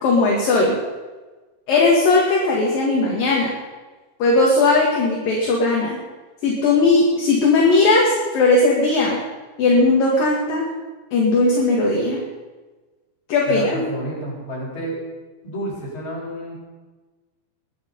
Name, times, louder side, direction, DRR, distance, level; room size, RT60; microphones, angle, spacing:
voice 1, 0.0-0.7 1.7-3.5 4.2-6.0 6.4-9.2 9.6-10.7 11.1-12.2 13.3-13.8, left 3 dB, 55° left, -2 dB, 3.7 m, -17 dB
voice 2, 13.5-15.0 15.4-16.6, right 1 dB, 25° left, -5 dB, 7.4 m, -30 dB
21.5 x 12.0 x 5.5 m, 1.3 s
omnidirectional pair, 5.1 m